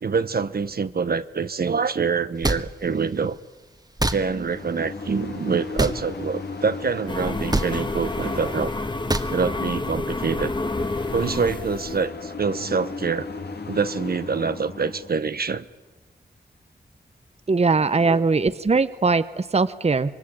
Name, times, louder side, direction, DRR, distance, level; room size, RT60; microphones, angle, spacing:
voice 1, 0.0-3.4 4.1-8.7 9.3-10.5 11.1-13.3 13.7-15.6 18.0-18.2, right 5 dB, 65° right, 12 dB, 1.0 m, -25 dB
sound 1, 2.4-2.6 4.0-4.2 5.8-6.0 7.5-7.7 9.1-9.3, right 2 dB, 25° right, 1.4 m, -22 dB
sound 2, 4.0-15.1, left 4 dB, 75° left, 2.4 m, -36 dB
sound 3, 7.1-12.1, left 2 dB, 25° left, 1.2 m, -29 dB
voice 2, 17.5-20.1, right 4 dB, 40° right, 13 dB, 0.9 m, -21 dB
26.0 x 22.0 x 8.6 m, 1.2 s
wide cardioid pair, 70°, 17 cm